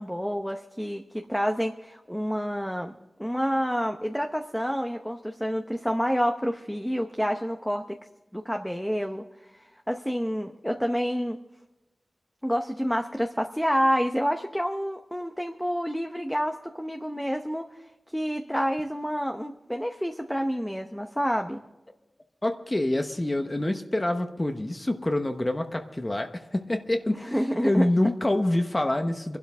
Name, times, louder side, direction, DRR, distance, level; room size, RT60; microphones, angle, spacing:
voice 1, 0.0-7.8 8.3-11.4 12.4-17.7 18.1-21.6 27.3-27.9, equal, 5° left, 4 dB, 0.8 m, -28 dB
voice 2, 22.4-27.3 27.6-29.4, left 1 dB, 25° left, 6 dB, 1.0 m, -26 dB
24.5 x 12.0 x 3.6 m, 1.0 s
wide cardioid pair, 85°, 0 cm